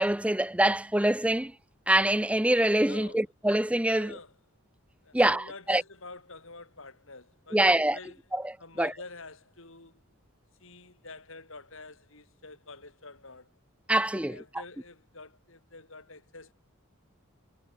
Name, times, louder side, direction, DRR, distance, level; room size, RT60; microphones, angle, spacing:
voice 1, 0.0-1.5 1.9-4.2 5.1-5.8 7.5-8.0 8.3-8.5 8.8-8.9 13.9-14.4, right 1 dB, 5° right, 0.6 m, -25 dB
voice 2, 2.9-3.2 3.9-4.3 5.0-8.2 8.6-10.0 10.6-13.5 14.1-16.5, left 3 dB, 65° left, 4.7 m, -47 dB
head